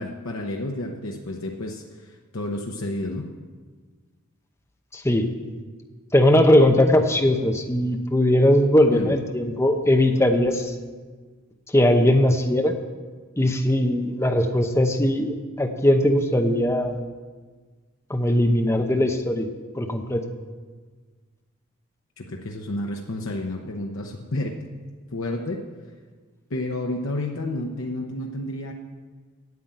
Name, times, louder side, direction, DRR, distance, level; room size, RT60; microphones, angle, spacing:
voice 1, 0.0-3.3 8.9-9.1 22.2-24.6 25.1-25.6 26.5-28.7, left 1 dB, 70° left, 1 dB, 0.8 m, -30 dB
voice 2, 4.9-5.3 6.1-10.7 11.7-12.7 13.4-17.0 18.1-19.5 19.8-20.2, left 1 dB, 15° left, 4 dB, 0.8 m, -19 dB
9.4 x 7.5 x 8.8 m, 1.4 s
head